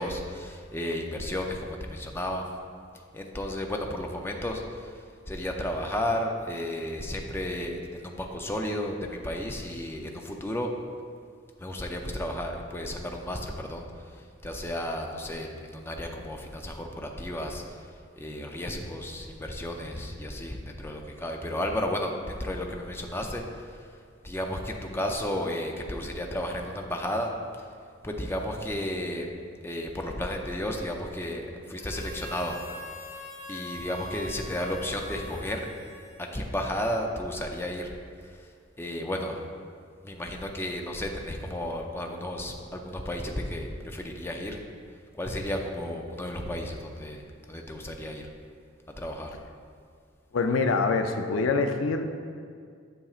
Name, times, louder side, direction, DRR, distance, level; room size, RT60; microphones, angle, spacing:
voice 1, 0.0-2.4 3.1-10.7 11.6-13.9 14.1-23.9 24.2-27.3 28.0-29.3 29.6-32.6 33.5-35.7 36.2-37.9 38.2-38.5 38.8-39.4 40.0-44.6 45.1-47.2 47.5-48.2 49.0-49.3, left 1 dB, 10° left, 2 dB, 0.5 m, -33 dB
Harmonica, 31.7-36.6, left 2 dB, 35° left, 1.0 m, -43 dB
voice 2, 50.3-52.2, left 4 dB, 85° left, 7 dB, 0.5 m, -25 dB
8.7 x 6.7 x 2.4 m, 2.2 s
head